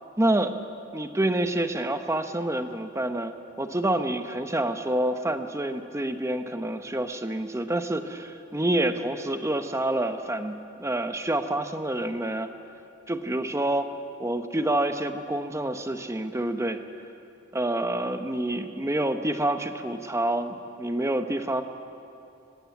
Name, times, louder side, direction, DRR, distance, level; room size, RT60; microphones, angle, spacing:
voice 1, 0.2-0.5 0.9-12.5 13.1-13.9 14.2-16.8 17.5-21.6, right 1 dB, 15° right, 8 dB, 0.9 m, -27 dB
18.0 x 17.5 x 9.5 m, 2.7 s
head